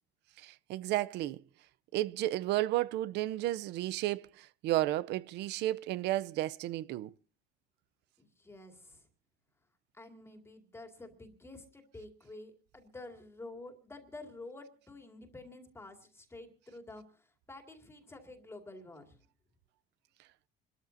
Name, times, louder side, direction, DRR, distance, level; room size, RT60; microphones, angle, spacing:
voice 1, 0.4-1.4 1.9-7.1, right 15 dB, 65° right, 0.7 m, -33 dB
voice 2, 8.2-9.0 9.9-19.2, left 2 dB, 15° left, 2.3 m, -50 dB
28.0 x 13.5 x 2.7 m
cardioid pair, 140°, 19 cm